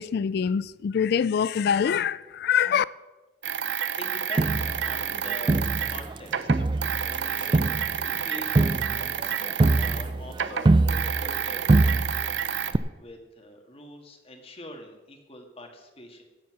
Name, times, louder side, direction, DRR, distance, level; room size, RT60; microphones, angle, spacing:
voice 1, 0.0-2.9, left 7 dB, 55° left, 0.3 m, -24 dB
sound 1, 3.4-10.1 10.3-12.7, right 8 dB, 70° right, 0.8 m, -30 dB
voice 2, 4.0-10.8 11.1-16.2, left 1 dB, 30° left, 1.9 m, -44 dB
Crowd, 4.4-6.2 6.5-11.4 11.7-12.4 12.7-12.8, right 2 dB, 25° right, 0.3 m, -24 dB
17.0 x 7.3 x 6.1 m
head